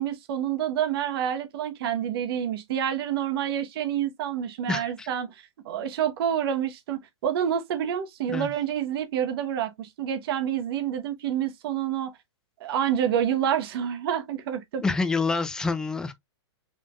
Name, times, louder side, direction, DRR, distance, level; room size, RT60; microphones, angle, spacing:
voice 1, 0.0-12.1 12.6-14.8, right 9 dB, 55° right, 1.2 m, -28 dB
voice 2, 4.7-5.1 8.3-8.5 14.8-16.1, left 4 dB, 5° left, 0.5 m, -27 dB
5.5 x 3.4 x 2.4 m
hypercardioid pair, 145°, 15 cm